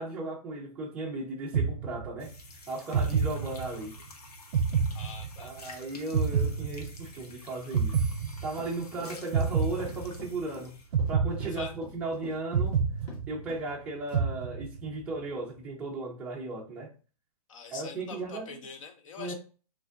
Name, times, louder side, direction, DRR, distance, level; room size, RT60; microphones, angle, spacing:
voice 1, 0.0-2.3 2.7-4.0 5.4-8.0 8.4-10.8 11.1-12.8 13.3-16.9 17.7-18.6 19.2-19.3, right 2 dB, 5° right, 0.4 m, -36 dB
sound 1, 1.5-2.4 2.9-4.0 4.5-5.7 6.1-7.3 7.7-8.9 9.3-10.4 10.9-12.1 12.5-13.7 14.1-15.0, right 6 dB, 80° right, 0.4 m, -29 dB
sound 2, 2.2-10.9, left 3 dB, 90° left, 0.8 m, -51 dB
voice 2, 4.9-5.5 11.5-11.8 17.5-19.3, left 6 dB, 55° left, 0.7 m, -43 dB
Run, 8.5-13.2 13.5-13.7 14.1-14.4, left 2 dB, 25° left, 1.1 m, -47 dB
3.4 x 2.5 x 2.4 m
hypercardioid pair, 155°, 19 cm